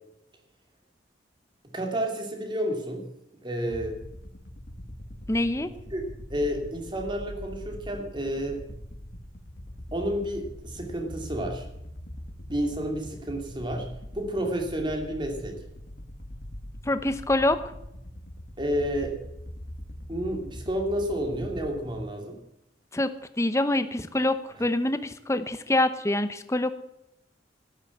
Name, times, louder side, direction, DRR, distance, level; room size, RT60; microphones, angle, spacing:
voice 1, 1.7-3.0 3.4-3.9 5.9-6.0 6.3-8.6 9.9-11.7 12.5-13.9 14.1-15.6 18.6-19.2 20.1-22.4, equal, 25° right, 3 dB, 2.6 m, -30 dB
sound 1, 3.7-22.0, equal, 60° left, 2.0 m, -42 dB
voice 2, 5.3-5.7 16.9-17.6 22.9-23.1 23.4-26.7, left 1 dB, 15° left, 11 dB, 0.8 m, -25 dB
12.0 x 11.0 x 7.9 m, 0.84 s
head